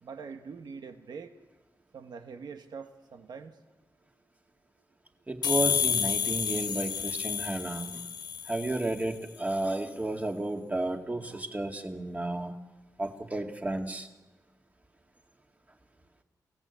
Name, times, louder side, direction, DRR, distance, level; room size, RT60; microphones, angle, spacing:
voice 1, 0.0-1.3 1.9-3.6, right 5 dB, 85° right, 1.3 m, -43 dB
voice 2, 5.3-8.0 8.5-12.6 13.0-14.1, right 2 dB, 20° right, 2.3 m, -32 dB
sound 1, 5.4-9.0, left 8 dB, 85° left, 0.8 m, -30 dB
28.5 x 17.5 x 8.3 m
wide cardioid pair, 85°, 7 cm